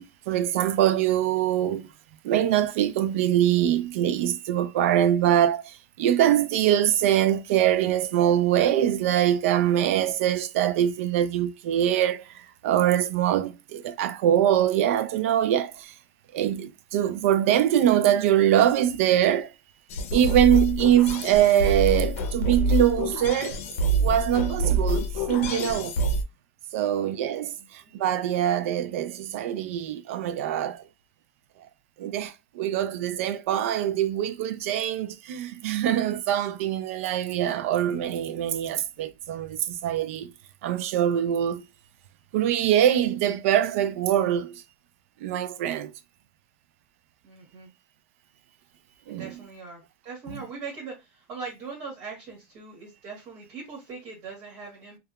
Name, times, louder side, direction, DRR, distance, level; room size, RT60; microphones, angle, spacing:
voice 1, 0.0-1.9 2.2-12.2 12.6-15.9 16.3-19.5 20.1-25.9 26.7-27.5 28.0-30.8 32.0-40.3 40.6-41.6 42.3-44.6 45.2-45.9 49.1-49.4 50.3-50.5, right 11 dB, 70° right, 0.4 m, -23 dB
sound 1, 19.9-26.2, right 1 dB, 75° left, 0.6 m, -26 dB
voice 2, 26.7-27.2 27.6-27.9 47.2-47.7 49.1-55.0, right 4 dB, 40° right, 1.3 m, -41 dB
2.8 x 2.3 x 2.3 m
supercardioid pair, 150°, 8 cm